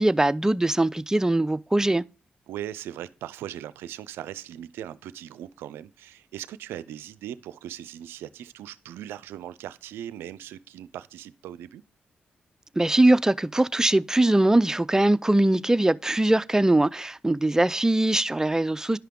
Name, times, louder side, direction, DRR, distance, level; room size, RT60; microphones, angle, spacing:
voice 1, 0.0-2.0 12.8-19.0, right 1 dB, 15° right, 0.5 m, -21 dB
voice 2, 2.5-11.8, right 11 dB, 85° right, 0.4 m, -39 dB
10.5 x 5.6 x 3.6 m
supercardioid pair, 40°, 4 cm